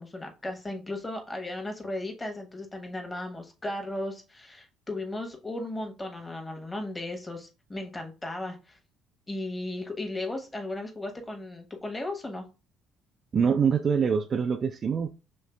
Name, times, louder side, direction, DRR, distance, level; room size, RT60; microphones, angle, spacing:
voice 1, 0.0-8.8 9.3-12.5, left 1 dB, 20° left, 1.0 m, -36 dB
voice 2, 13.3-15.1, right 6 dB, 40° right, 0.3 m, -24 dB
6.4 x 3.1 x 2.2 m
figure-of-eight pair, 50°, 0 cm